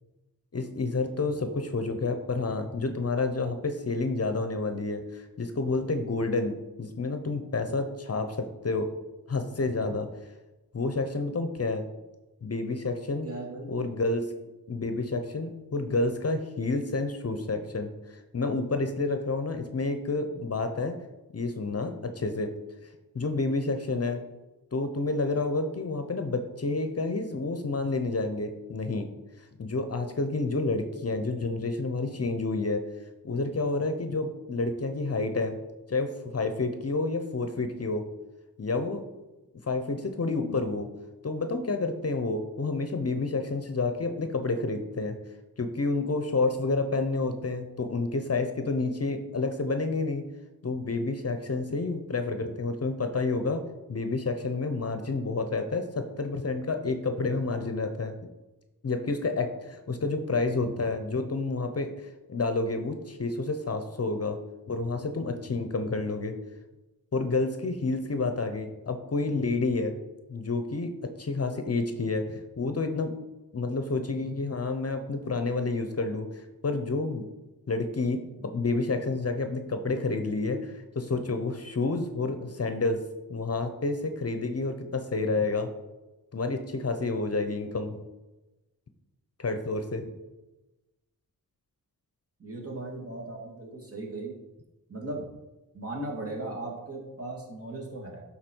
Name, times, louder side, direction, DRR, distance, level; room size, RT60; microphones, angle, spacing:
voice 1, 0.5-8.9 9.3-10.1 10.7-11.8 12.4-13.3 13.7-14.3 14.7-21.0 21.3-22.5 23.1-24.2 24.7-29.1 29.6-32.8 33.2-35.6 35.9-38.0 38.6-39.0 39.6-40.9 41.2-45.2 45.6-50.2 50.6-53.6 53.9-58.1 58.8-64.4 64.7-66.3 67.1-69.9 70.3-73.1 73.5-77.3 77.7-83.0 83.3-85.7 86.3-88.0 89.4-90.1, left 3 dB, 45° left, 7 dB, 0.7 m, -29 dB
voice 2, 13.2-13.7 92.4-94.4 94.9-95.3 95.7-98.2, right 2 dB, 40° right, -2 dB, 2.2 m, -37 dB
11.5 x 4.1 x 4.5 m, 1.1 s
wide cardioid pair, 105°, 36 cm